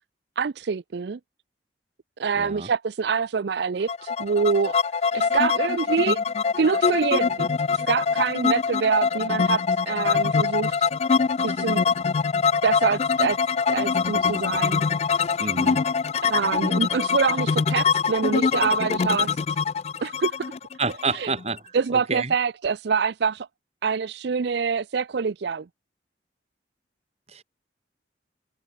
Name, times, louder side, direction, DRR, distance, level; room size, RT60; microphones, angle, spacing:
voice 1, 0.4-1.2 2.2-4.8 5.1-6.2 6.6-10.9 11.4-11.8 12.6-13.4 13.7-14.8 16.2-19.4 20.0-20.5 21.1-21.3 21.7-23.5 23.8-25.7, right 5 dB, 65° right, 0.4 m, -25 dB
voice 2, 2.4-2.7 15.4-15.8 20.8-21.6 21.9-22.3 27.3-27.4, right 3 dB, 35° right, 3.0 m, -28 dB
sound 1, 3.9-21.6, left 5 dB, 35° left, 0.3 m, -24 dB
head